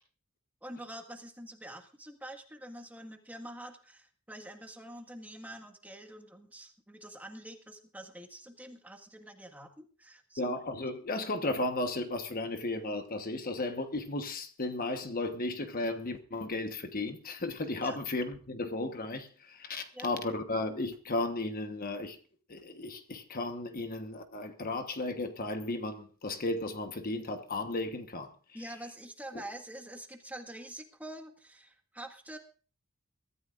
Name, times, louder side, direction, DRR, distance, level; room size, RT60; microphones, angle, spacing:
voice 1, 0.6-10.5 17.8-18.0 19.9-20.1 28.5-32.4, right 1 dB, 5° right, 1.7 m, -46 dB
voice 2, 10.4-22.2 22.5-28.3, left 2 dB, 40° left, 1.2 m, -34 dB
23.0 x 14.0 x 2.5 m
head